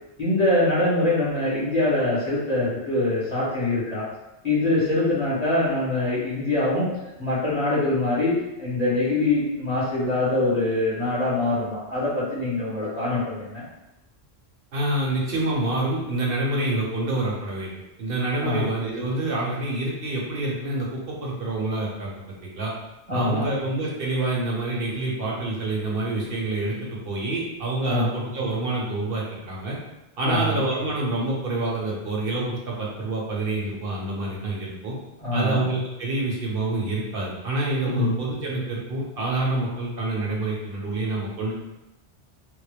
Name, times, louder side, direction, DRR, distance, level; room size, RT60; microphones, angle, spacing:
voice 1, 0.2-4.0 4.4-6.9 7.2-13.6 18.4-18.7 23.1-23.4 27.9-28.1 30.2-30.6 35.2-35.6 37.9-38.2, left 2 dB, 35° left, -10 dB, 1.5 m, -24 dB
voice 2, 14.7-17.7 18.0-22.7 23.1-29.8 30.2-34.9 35.3-41.5, right 2 dB, 60° right, -4 dB, 1.0 m, -27 dB
3.5 x 2.1 x 3.3 m, 0.95 s
omnidirectional pair, 1.1 m